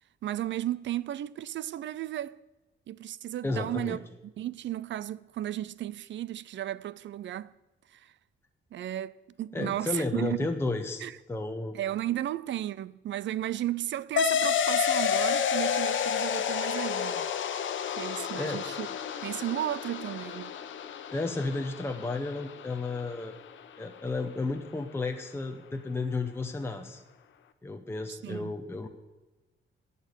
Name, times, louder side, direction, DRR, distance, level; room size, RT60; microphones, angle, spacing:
voice 1, 0.2-2.4 2.9-4.0 4.4-7.5 7.9-8.1 8.7-10.5 11.0-11.2 11.7-17.3 18.0-18.9 19.2-20.6 28.1-28.6, right 13 dB, 70° right, 0.5 m, -34 dB
voice 2, 3.4-4.0 9.5-11.8 18.3-18.6 21.1-23.3 23.8-27.0 27.6-28.9, left 3 dB, 10° left, 0.8 m, -33 dB
sound 1, 14.2-23.2, left 8 dB, 75° left, 1.0 m, -30 dB
14.5 x 6.9 x 9.7 m
wide cardioid pair, 175°, 20 cm